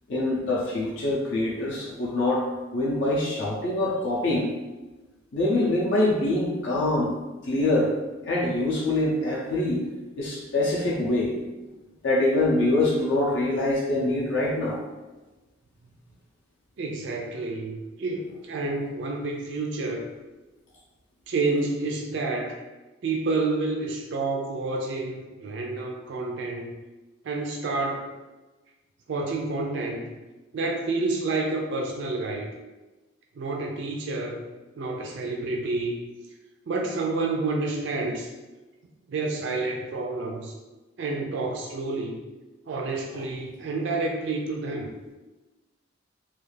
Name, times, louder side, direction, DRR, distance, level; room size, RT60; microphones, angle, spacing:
voice 1, 0.1-4.5 5.3-7.1 7.4-7.9 8.2-9.8 10.2-11.4 12.0-14.8 43.1-43.2, left 2 dB, 60° left, -4 dB, 0.5 m, -24 dB
voice 2, 16.8-20.1 21.3-22.6 23.0-26.7 27.2-28.1 29.1-30.0 30.5-32.5 33.4-34.4 34.8-36.0 36.7-38.3 39.1-40.5 41.0-42.2 42.7-44.9, right 3 dB, 60° right, 0 dB, 0.4 m, -29 dB
2.4 x 2.3 x 3.1 m, 1.2 s
head